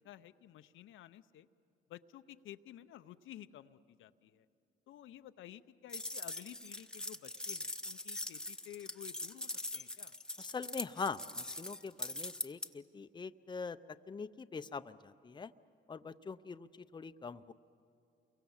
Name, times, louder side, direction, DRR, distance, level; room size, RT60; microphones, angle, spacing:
voice 1, 0.0-1.5 1.9-4.5 4.9-10.1, left 12 dB, 80° left, 11 dB, 0.7 m, -53 dB
sound 1, 5.9-12.7, left 1 dB, 5° left, 1.0 m, -42 dB
voice 2, 10.4-13.8 14.1-15.5 15.9-17.5, left 5 dB, 20° left, 10 dB, 0.6 m, -43 dB
29.0 x 23.5 x 7.2 m, 2.6 s
cardioid pair, 90°, 20 cm